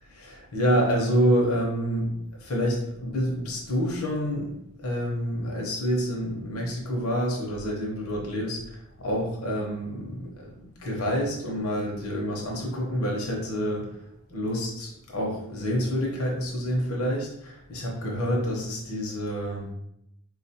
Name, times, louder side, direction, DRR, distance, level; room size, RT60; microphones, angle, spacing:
voice 1, 0.2-2.1 2.4-14.0 14.3-19.7, equal, 70° left, -1 dB, 0.7 m, -28 dB
3.7 x 2.4 x 2.7 m, 0.78 s
head